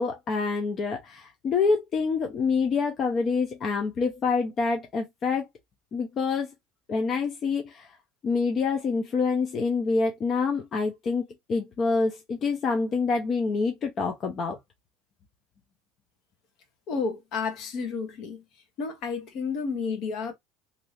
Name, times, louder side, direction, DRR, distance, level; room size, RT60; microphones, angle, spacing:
voice 1, 0.0-5.5 5.9-6.5 6.9-7.9 8.2-11.2 11.5-14.6, left 4 dB, 40° left, 0.6 m, -26 dB
voice 2, 16.9-18.4 18.8-20.3, left 5 dB, 60° left, 1.1 m, -31 dB
2.7 x 2.6 x 3.1 m
supercardioid pair, 100°, 0 cm